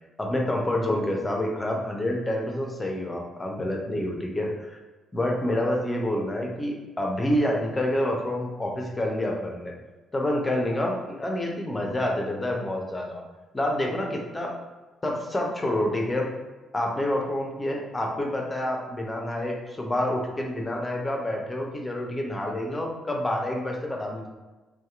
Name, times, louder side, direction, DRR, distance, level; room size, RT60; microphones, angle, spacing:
voice 1, 0.2-4.8 5.1-9.7 10.1-13.2 13.5-14.5 15.0-16.3 16.7-24.3, left 1 dB, 20° left, 0 dB, 0.5 m, -28 dB
2.7 x 2.2 x 2.3 m, 1.2 s
figure-of-eight pair, 40°, 0 cm